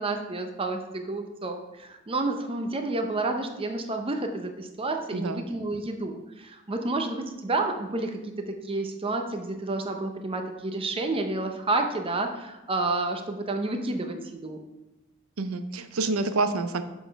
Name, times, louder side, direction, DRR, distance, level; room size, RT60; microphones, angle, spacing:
voice 1, 0.0-14.6, right 2 dB, 25° right, 5 dB, 0.7 m, -30 dB
voice 2, 5.1-5.5 15.4-16.8, right 3 dB, 75° right, 10 dB, 0.6 m, -27 dB
7.0 x 3.9 x 5.2 m, 1.0 s
head